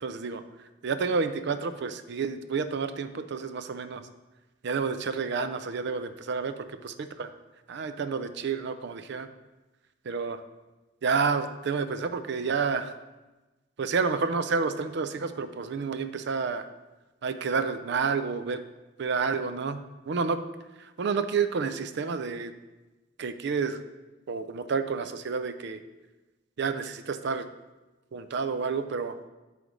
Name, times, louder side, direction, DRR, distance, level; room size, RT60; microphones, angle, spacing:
voice 1, 0.0-0.4 0.8-4.0 4.6-6.9 7.2-7.3 7.7-9.3 10.0-10.4 11.0-12.9 13.8-16.7 17.2-18.6 19.0-20.4 20.8-22.5 23.2-23.8 24.3-25.8 26.6-27.5 28.1-29.2, right 5 dB, 65° right, 10 dB, 0.4 m, -29 dB
9.0 x 3.3 x 4.9 m, 1.1 s
head